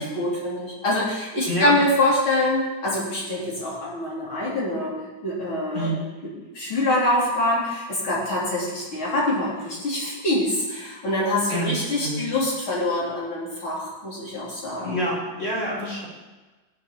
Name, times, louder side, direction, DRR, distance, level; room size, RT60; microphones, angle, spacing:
voice 1, 0.0-4.9 5.2-6.0 6.5-15.0 15.7-15.9, left 1 dB, 85° left, -6 dB, 4.6 m, -25 dB
voice 2, 1.5-1.8 5.7-6.0 11.5-11.8 12.0-12.3 14.8-16.1, right 1 dB, 35° left, -4 dB, 4.5 m, -27 dB
19.5 x 7.4 x 4.5 m, 1.2 s
omnidirectional pair, 2.2 m